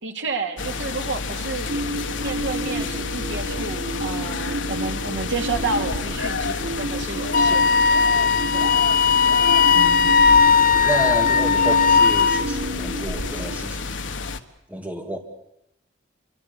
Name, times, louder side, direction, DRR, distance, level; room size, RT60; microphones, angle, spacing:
voice 1, 0.0-1.7 2.2-7.6 8.5-8.8, right 3 dB, 65° right, 4 dB, 2.8 m, -30 dB
sound 1, 0.6-14.4, left 4 dB, 65° left, 1.5 m, -30 dB
sound 2, 1.7-13.5, right 1 dB, 85° right, 4.4 m, -31 dB
Wind instrument woodwind instrument, 7.3-12.5, left 5 dB, 45° left, 0.9 m, -17 dB
voice 2, 9.7-10.3 10.8-14.0 14.7-15.2, right 1 dB, 10° right, 4 dB, 2.1 m, -30 dB
27.0 x 24.0 x 7.0 m, 0.83 s
head